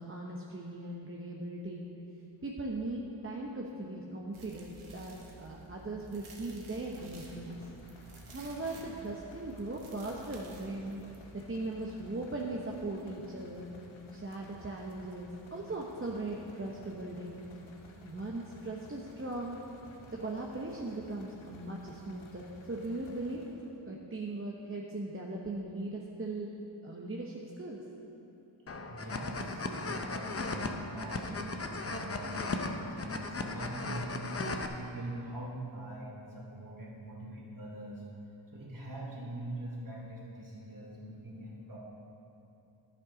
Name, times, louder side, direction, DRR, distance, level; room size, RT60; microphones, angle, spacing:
voice 1, 0.0-1.9 2.4-7.7 8.3-11.0 11.3-13.7 14.1-17.4 18.0-19.6 20.1-23.4 23.8-26.5 26.8-27.9, right 2 dB, 25° right, -2 dB, 0.9 m, -39 dB
sound 1, 4.3-11.2, right 3 dB, 85° right, 1.4 m, -52 dB
sound 2, 6.9-23.8, left 2 dB, 75° left, 1.2 m, -54 dB
sound 3, 28.7-34.7, left 3 dB, 30° left, 0.7 m, -37 dB
voice 2, 28.9-34.4 34.8-38.0 38.5-41.8, right 1 dB, 45° right, -3 dB, 2.5 m, -43 dB
10.5 x 7.8 x 5.0 m, 2.9 s
cardioid pair, 70°, 47 cm